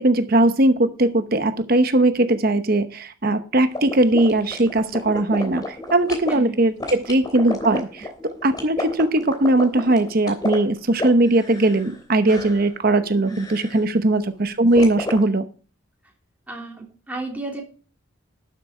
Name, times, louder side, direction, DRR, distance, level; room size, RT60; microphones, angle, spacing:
voice 1, 0.0-15.4, right 2 dB, 45° right, 10 dB, 0.9 m, -19 dB
sound 1, 3.7-6.3 6.8-12.0 12.2-12.7 13.3-13.8 14.8-15.2, left 2 dB, 20° left, 3.1 m, -31 dB
voice 2, 6.3-6.6 13.2-13.5 16.5-17.6, right 2 dB, 10° right, 0 dB, 3.2 m, -33 dB
12.5 x 7.6 x 4.8 m, 0.37 s
head